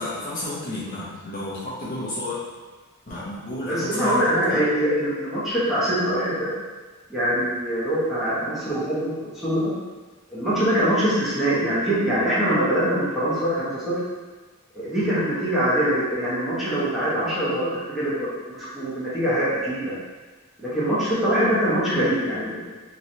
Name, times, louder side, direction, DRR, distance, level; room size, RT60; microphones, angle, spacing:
voice 1, 0.0-2.5 3.1-4.6, left 1 dB, 40° left, -8 dB, 0.7 m, -32 dB
voice 2, 3.7-6.5 7.1-9.7 10.3-13.9 14.7-18.3 18.5-19.9 20.6-22.6, equal, ahead, -12 dB, 1.0 m, -23 dB
3.1 x 3.0 x 2.7 m, 1.3 s
head